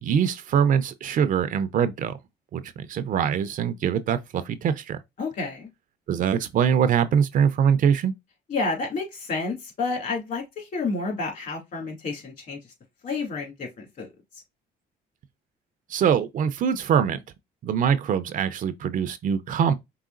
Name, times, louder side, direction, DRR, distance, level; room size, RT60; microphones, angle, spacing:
voice 1, 0.0-2.1 2.5-5.0 6.1-8.1 15.9-17.2 17.6-19.7, right 8 dB, 50° right, 0.6 m, -23 dB
voice 2, 5.2-5.7 8.5-12.6 13.0-14.1, left 3 dB, 50° left, 2.5 m, -30 dB
4.8 x 3.6 x 2.5 m
cardioid pair, 110°, 17 cm